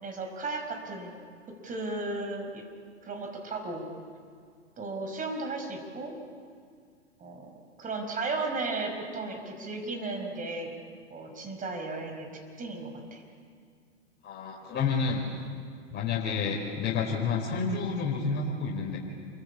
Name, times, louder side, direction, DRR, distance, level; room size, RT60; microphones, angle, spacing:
voice 1, 0.0-1.1 1.5-2.7 3.0-3.8 4.8-6.2 7.2-7.5 7.8-10.7 11.1-12.3 12.6-13.2, right 3 dB, 25° right, 4 dB, 5.2 m, -35 dB
voice 2, 14.2-15.2 15.9-19.0, left 5 dB, 30° left, -3 dB, 4.6 m, -29 dB
28.0 x 23.0 x 8.6 m, 2.2 s
figure-of-eight pair, 100°, 35 cm